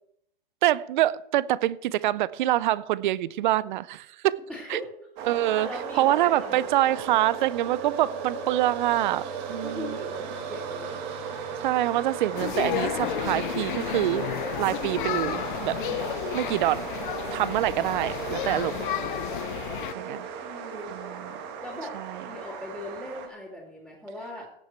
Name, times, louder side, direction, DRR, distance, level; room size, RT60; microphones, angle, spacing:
voice 1, 0.6-4.4 4.7-4.8 5.3-5.7 6.0-10.0 11.6-14.3 14.6-15.8 16.3-16.9 17.3-18.7 19.9-20.3 20.9-21.3 21.9-22.2, right 14 dB, 55° right, 0.6 m, -25 dB
voice 2, 4.5-4.9 5.5-6.7 9.5-11.0 19.9-20.9 21.6-21.9 22.2-24.5, left 1 dB, ahead, 2.7 m, -39 dB
sound 1, 5.2-23.3, right 6 dB, 35° right, 1.7 m, -36 dB
sound 2, 12.3-19.9, left 14 dB, 60° left, 0.6 m, -32 dB
17.0 x 6.4 x 4.4 m
hypercardioid pair, 125°, 29 cm